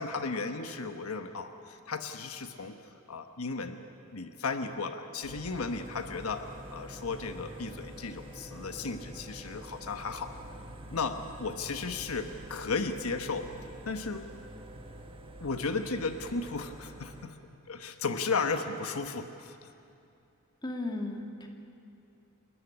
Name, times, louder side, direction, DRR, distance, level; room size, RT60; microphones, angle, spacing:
voice 1, 0.0-2.8 3.1-3.8 4.1-10.4 10.9-13.5 13.9-14.2 15.4-17.3 17.7-19.7, left 4 dB, 90° left, 7 dB, 1.2 m, -35 dB
sound 1, 5.2-17.3, right 1 dB, 25° right, 1.4 m, -46 dB
voice 2, 20.6-21.5, left 2 dB, 20° left, 1 dB, 2.2 m, -35 dB
29.0 x 13.5 x 9.9 m, 2.6 s
head